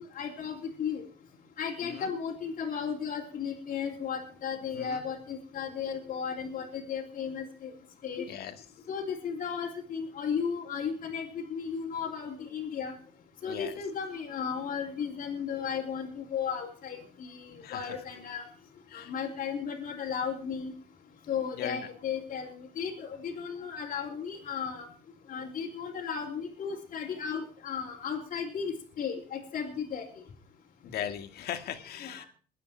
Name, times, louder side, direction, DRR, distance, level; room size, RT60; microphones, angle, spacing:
voice 1, 0.1-1.0 1.6-7.7 8.0-8.3 8.9-12.9 13.4-18.4 18.9-20.7 21.3-24.9 25.3-30.0 32.0-32.3, left 7 dB, 55° left, -2 dB, 3.3 m, -35 dB
voice 2, 13.5-13.8 17.6-18.0 18.9-19.1 21.5-21.9 30.8-32.3, left 9 dB, 70° left, 8 dB, 2.0 m, -38 dB
21.5 x 9.1 x 4.5 m, 0.41 s
cardioid pair, 110°, 17 cm